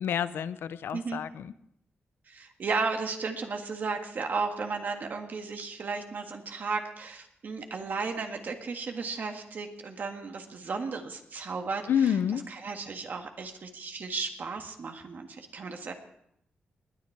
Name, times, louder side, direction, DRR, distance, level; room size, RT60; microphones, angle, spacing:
voice 1, 0.0-1.5 11.9-12.4, left 8 dB, 85° left, 15 dB, 0.6 m, -28 dB
voice 2, 2.3-15.9, right 4 dB, 55° right, 5 dB, 1.7 m, -34 dB
20.0 x 9.9 x 4.6 m, 0.76 s
cardioid pair, 100°, 4 cm